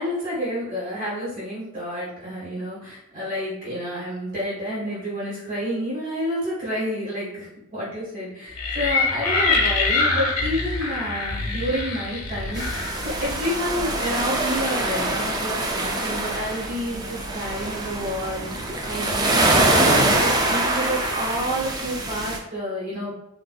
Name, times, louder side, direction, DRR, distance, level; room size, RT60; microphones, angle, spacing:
voice 1, 0.0-23.1, equal, 35° right, -9 dB, 1.2 m, -29 dB
sound 1, 8.6-13.4, left 3 dB, 85° left, 0.8 m, -24 dB
sound 2, 12.5-22.4, right 2 dB, 20° right, 0.3 m, -24 dB
3.9 x 2.5 x 2.2 m, 0.82 s
head